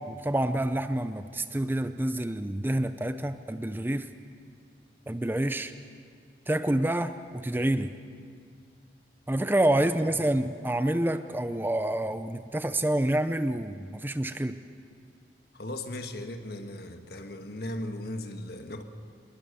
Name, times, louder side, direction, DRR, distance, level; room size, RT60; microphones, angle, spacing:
voice 1, 0.0-4.1 5.1-5.7 6.5-8.0 9.3-14.6, right 1 dB, 10° right, 10 dB, 0.5 m, -28 dB
voice 2, 15.5-18.8, left 1 dB, 60° left, 6 dB, 1.5 m, -37 dB
23.5 x 20.5 x 6.8 m, 2.2 s
head